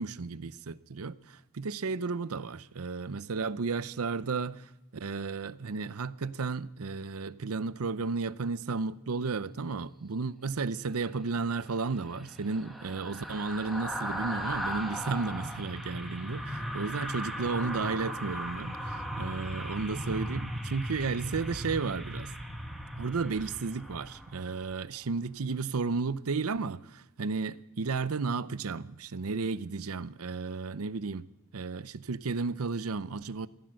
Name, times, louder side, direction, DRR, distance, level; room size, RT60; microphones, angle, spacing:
voice 1, 0.0-22.3 23.0-31.3 31.5-33.5, right 4 dB, 75° right, 0.7 m, -33 dB
sound 1, 11.5-24.8 25.1-25.3, equal, ahead, 1.6 m, -37 dB
15.0 x 15.0 x 6.4 m
head